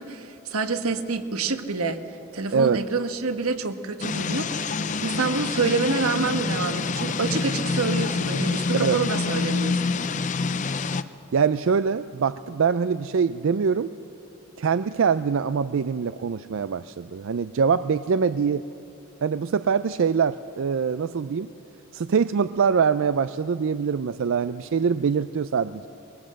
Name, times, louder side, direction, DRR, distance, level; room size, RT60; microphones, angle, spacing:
voice 1, 0.0-2.0 2.3-4.7 5.0-9.8, right 4 dB, 90° right, 8 dB, 1.2 m, -27 dB
sound 1, 4.0-11.0, left 4 dB, 35° left, 0.5 m, -27 dB
voice 2, 11.3-13.9 14.6-18.6 19.2-21.5 21.9-25.9, right 6 dB, 65° right, 13 dB, 0.4 m, -23 dB
21.5 x 18.5 x 7.5 m, 2.7 s
head